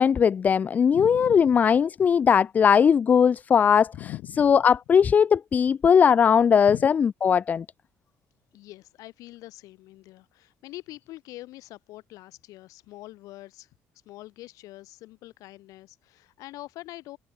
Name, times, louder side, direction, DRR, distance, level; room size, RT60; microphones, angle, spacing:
voice 1, 0.0-3.9 4.4-7.6, left 7 dB, 30° left, 0.7 m, -19 dB
voice 2, 0.9-1.5 3.9-4.6 6.6-6.9 8.5-13.7 14.0-17.2, left 17 dB, 80° left, 4.8 m, -43 dB
cardioid pair, 165°, 6 cm